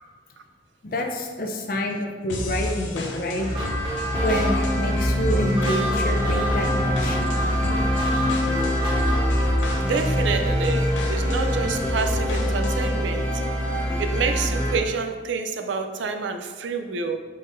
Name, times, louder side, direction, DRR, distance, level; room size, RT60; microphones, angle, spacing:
voice 1, 0.8-3.5 4.2-7.2, left 1 dB, 50° left, 2 dB, 0.6 m, -27 dB
sound 1, 2.3-12.9, left 1 dB, 90° left, 0.6 m, -32 dB
sound 2, 3.4-10.0, equal, 25° right, 0.9 m, -30 dB
sound 3, 4.1-14.8, equal, 10° left, 0.8 m, -24 dB
voice 2, 9.8-13.4 14.0-17.2, right 5 dB, 75° right, 6 dB, 0.4 m, -28 dB
5.3 x 3.8 x 2.6 m, 1.5 s
head